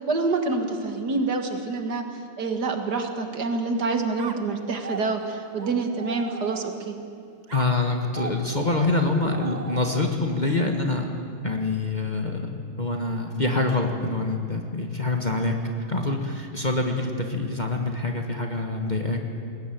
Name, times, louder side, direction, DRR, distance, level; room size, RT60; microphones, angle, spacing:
voice 1, 0.1-2.0 2.4-7.0, right 3 dB, 60° right, 6 dB, 2.2 m, -27 dB
sound 1, 4.2-7.0 7.5-10.4, right 4 dB, 35° right, 0.7 m, -39 dB
voice 2, 7.5-11.1 11.4-15.5 15.9-19.2, left 2 dB, 25° left, 2 dB, 1.5 m, -25 dB
21.5 x 18.0 x 9.3 m, 2.5 s
omnidirectional pair, 2.0 m